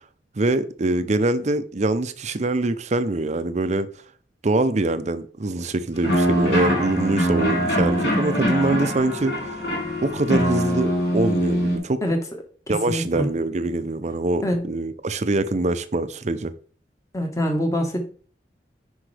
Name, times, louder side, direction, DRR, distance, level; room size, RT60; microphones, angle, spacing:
voice 1, 0.4-3.9 4.4-9.6 10.0-12.0 12.7-16.5, right 2 dB, 40° right, 0.6 m, -24 dB
sound 1, 6.0-11.8, equal, 65° left, 3.0 m, -23 dB
voice 2, 12.7-13.3 14.4-14.7 17.1-18.0, equal, 20° left, 1.4 m, -24 dB
9.8 x 5.3 x 3.4 m
head